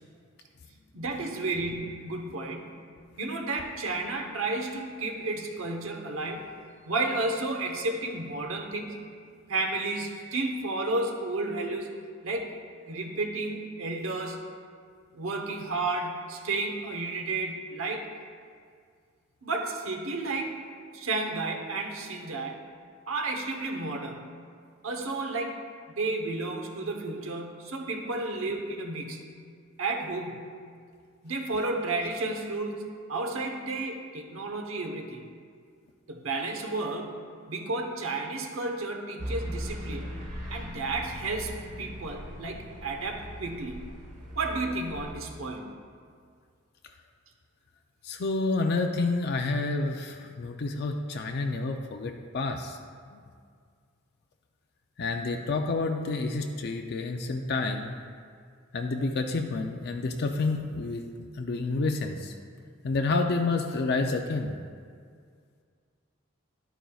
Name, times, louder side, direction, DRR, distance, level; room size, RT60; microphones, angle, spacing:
voice 1, 0.9-2.8 3.2-6.6 6.8-8.9 9.5-11.9 12.2-12.5 12.9-14.4 15.1-18.1 19.4-20.6 20.9-22.6 23.1-24.3 24.8-25.5 26.0-29.3 29.8-30.5 31.2-32.8 33.1-35.2 36.1-37.2 37.5-40.1 40.5-41.5 41.8-43.9 44.4-45.7, right 2 dB, 85° right, 3 dB, 1.0 m, -32 dB
sound 1, 39.2-45.1, equal, 40° right, 1.2 m, -39 dB
voice 2, 48.0-52.8 53.1-53.2 55.0-58.0 58.7-61.0 61.3-62.4 62.8-64.5, left 3 dB, 55° left, 4 dB, 0.5 m, -29 dB
11.5 x 9.0 x 2.3 m, 2.1 s
head